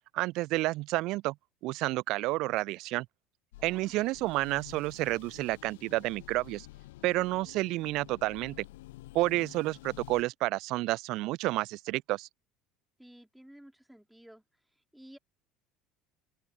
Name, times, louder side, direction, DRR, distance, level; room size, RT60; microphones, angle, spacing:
voice 1, 0.1-1.3 1.6-3.1 3.6-6.7 7.0-8.6 9.1-12.3, right 19 dB, 55° right, 0.5 m, -30 dB
sound 1, 3.5-10.2, left 18 dB, 65° left, 1.0 m, -50 dB
voice 2, 3.6-4.0 9.3-9.5 13.0-14.4 14.9-15.2, right 1 dB, 5° right, 4.1 m, -54 dB
open air
figure-of-eight pair, 65°, 0 cm